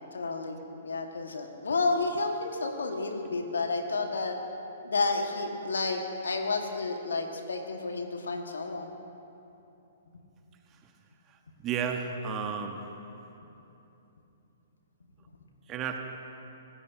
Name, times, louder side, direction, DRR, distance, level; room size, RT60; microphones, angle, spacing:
voice 1, 0.1-4.4 4.8-8.9, left 3 dB, 75° left, 3 dB, 1.8 m, -31 dB
voice 2, 11.6-12.8 15.7-16.0, right 7 dB, 25° right, 4 dB, 1.4 m, -32 dB
26.0 x 18.5 x 2.9 m, 2.9 s
figure-of-eight pair, 120°, 0 cm